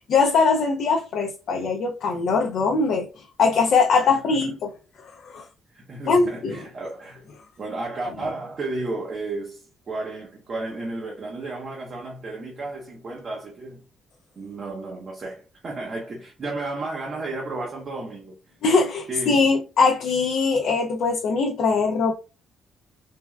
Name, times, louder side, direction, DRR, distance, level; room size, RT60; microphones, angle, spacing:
voice 1, 0.0-4.7 5.3-5.4 6.1-6.6 18.6-22.1, left 4 dB, 70° left, 0.4 m, -21 dB
voice 2, 5.7-7.3 7.6-13.8 14.4-18.4 19.1-19.4, right 2 dB, 45° right, 0.7 m, -33 dB
3.3 x 2.2 x 2.2 m
cardioid pair, 90°, 0 cm